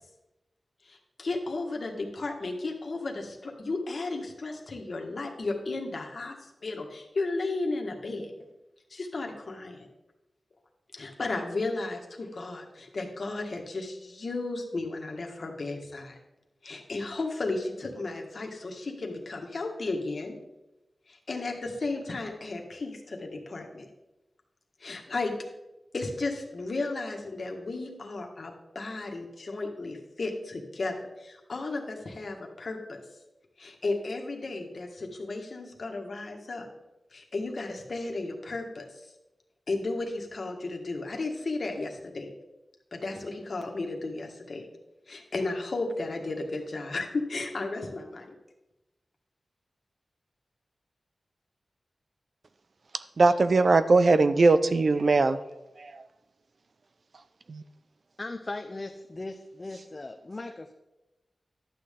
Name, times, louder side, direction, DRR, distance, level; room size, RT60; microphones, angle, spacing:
voice 1, 0.8-6.3 6.6-8.3 8.9-9.9 10.9-16.2 16.6-20.3 21.1-23.8 24.8-25.3 25.9-33.0 33.6-36.7 37.1-38.8 39.7-42.3 42.9-44.7 45.1-48.3, left 3 dB, 55° left, 2 dB, 1.6 m, -34 dB
voice 2, 53.2-55.4 55.8-56.0 57.5-57.6, right 3 dB, 55° right, 13 dB, 0.5 m, -21 dB
voice 3, 58.2-60.7, left 2 dB, 35° left, 5 dB, 0.5 m, -38 dB
11.5 x 8.5 x 3.7 m, 0.98 s
wide cardioid pair, 95°, 0 cm